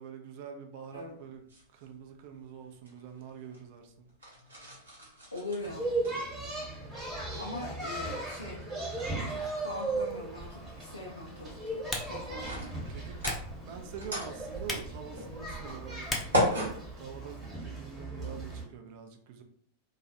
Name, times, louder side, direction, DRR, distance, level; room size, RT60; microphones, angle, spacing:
voice 1, 0.0-1.4 1.7-4.1 12.9-16.6 17.0-19.4, right 7 dB, 50° right, 5 dB, 0.4 m, -45 dB
sound 1, 0.9-17.9, left 1 dB, 75° right, 0.8 m, -39 dB
voice 2, 5.3-5.9 7.4-8.7 9.1-12.8, left 2 dB, 80° left, -3 dB, 0.4 m, -42 dB
sound 2, 5.6-18.6, right 2 dB, 20° right, 1.1 m, -37 dB
Typing, 10.1-17.6, left 2 dB, 15° left, 0.5 m, -43 dB
2.3 x 2.1 x 2.6 m, 0.63 s
figure-of-eight pair, 90°, 0 cm